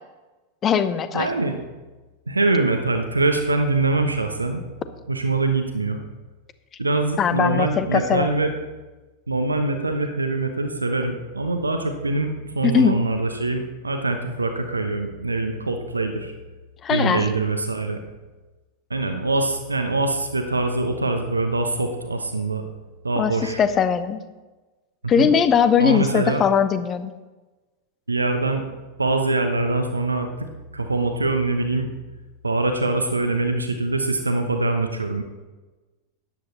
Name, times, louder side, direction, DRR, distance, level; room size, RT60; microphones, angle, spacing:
voice 1, 0.6-1.3 7.2-8.3 12.6-13.0 16.8-17.3 23.2-23.3 23.6-24.2 25.1-27.1, left 7 dB, 25° left, 12 dB, 0.8 m, -20 dB
voice 2, 1.1-1.6 2.3-4.6 5.1-6.0 6.8-8.5 9.3-16.3 16.9-18.0 18.9-22.6 23.0-23.6 25.2-25.3 25.8-26.4 28.1-28.6 29.0-30.5 30.7-31.9 32.4-35.2, right 2 dB, 80° right, 6 dB, 0.9 m, -23 dB
13.0 x 9.8 x 4.1 m, 1.2 s
figure-of-eight pair, 90°, 0 cm